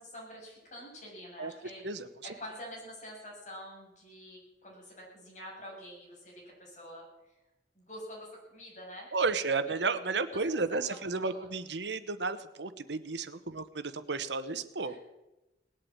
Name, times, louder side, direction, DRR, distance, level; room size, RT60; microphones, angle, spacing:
voice 1, 0.0-1.8 2.2-7.4 7.7-9.1 9.6-9.8 10.5-11.5 13.4-13.6 14.8-15.0, equal, 45° left, -2 dB, 7.4 m, -47 dB
voice 2, 9.1-15.0, right 4 dB, 80° right, 11 dB, 1.1 m, -32 dB
19.0 x 8.5 x 8.8 m, 1.0 s
head